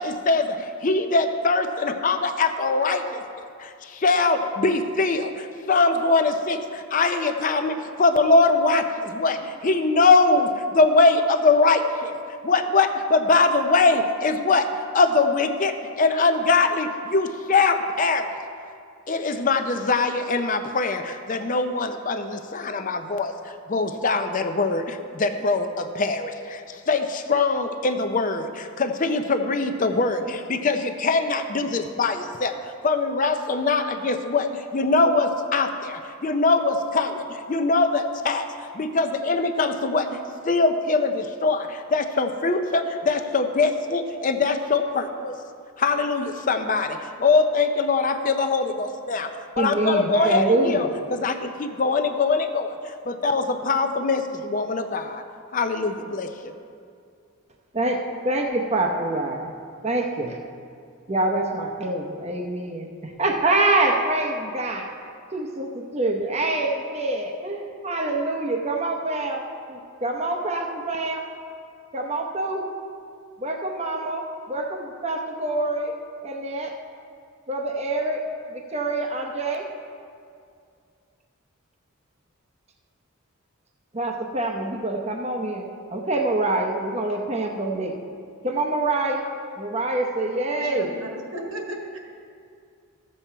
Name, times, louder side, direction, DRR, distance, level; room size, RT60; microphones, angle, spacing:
voice 1, 0.0-3.2 3.6-12.1 12.4-14.7 14.9-18.4 19.1-23.3 23.7-32.5 32.8-38.5 38.7-40.2 40.4-45.3 45.8-55.2 55.5-56.5, left 3 dB, 35° left, 7 dB, 0.5 m, -22 dB
voice 2, 49.6-50.9 57.7-59.5 59.8-60.4 61.1-64.9 65.3-71.3 71.9-72.7 73.4-75.9 76.2-76.7 77.5-78.2 78.5-79.6 83.9-88.0 88.4-89.2 89.6-90.9, right 2 dB, 30° right, 1 dB, 0.7 m, -26 dB
voice 3, 90.5-92.0, right 1 dB, 70° right, 0 dB, 1.5 m, -35 dB
13.0 x 7.5 x 4.5 m, 2.3 s
head